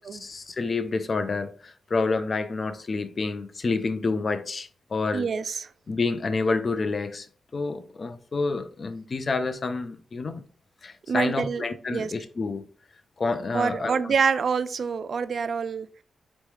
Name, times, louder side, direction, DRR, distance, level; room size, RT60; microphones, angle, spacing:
voice 1, 0.1-5.3 5.9-7.3 7.5-10.4 10.8-12.7 13.2-14.1, left 3 dB, 45° left, 0.6 m, -28 dB
voice 2, 5.1-5.7 11.1-11.6 11.9-12.1 13.5-15.9, right 6 dB, 60° right, 0.3 m, -26 dB
4.3 x 3.1 x 3.4 m
cardioid pair, 80°, 0 cm